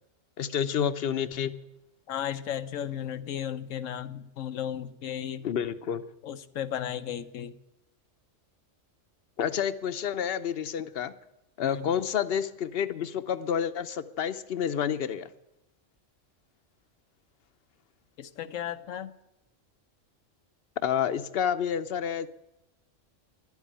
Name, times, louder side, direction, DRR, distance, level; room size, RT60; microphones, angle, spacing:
voice 1, 0.4-1.6 5.4-6.0 9.4-11.1 11.6-15.3 20.8-22.3, left 8 dB, 55° left, 13 dB, 0.9 m, -29 dB
voice 2, 2.1-5.5 6.2-7.5 11.6-11.9 18.2-19.1, left 10 dB, 85° left, 11 dB, 1.1 m, -35 dB
11.5 x 8.2 x 9.8 m, 0.89 s
omnidirectional pair, 1.3 m